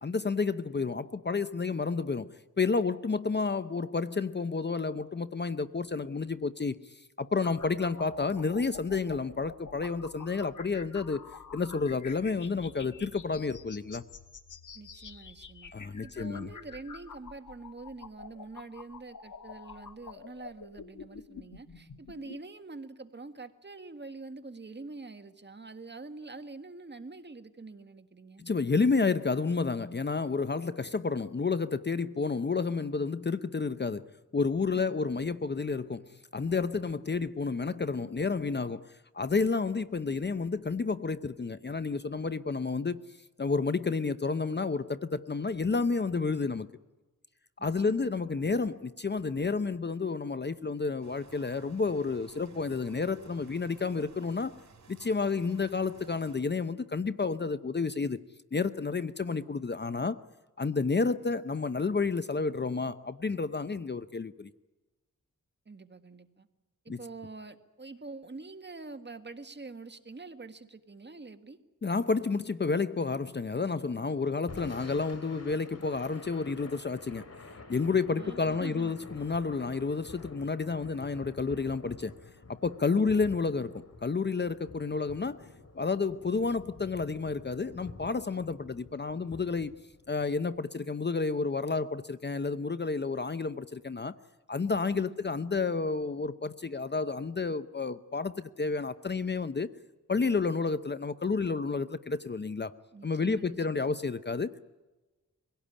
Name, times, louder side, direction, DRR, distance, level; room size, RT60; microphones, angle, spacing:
voice 1, 0.0-11.2 11.5-14.0 15.7-16.5 28.4-34.1 34.3-43.0 43.4-46.7 47.6-54.5 54.9-58.2 58.5-60.2 60.6-64.5 66.9-67.0 71.8-77.3 77.7-82.1 82.5-85.5 85.7-89.7 90.1-94.1 94.5-99.7 100.1-102.7 103.0-104.6, left 4 dB, 30° left, 0.7 m, -30 dB
sound 1, 7.4-22.4, left 6 dB, 65° left, 1.5 m, -48 dB
voice 2, 14.7-15.7 16.0-28.4 34.7-35.0 47.6-48.1 65.7-66.5 66.9-71.6 74.2-74.4 78.2-79.0 81.8-81.9 82.9-83.3 94.9-95.2 102.9-103.9, right 3 dB, 35° right, 1.7 m, -45 dB
sound 2, 51.0-56.4, right 4 dB, 60° right, 3.8 m, -56 dB
Thunder / Rain, 74.3-90.6, left 3 dB, 50° left, 2.8 m, -49 dB
23.5 x 17.5 x 10.0 m
wide cardioid pair, 80°, 33 cm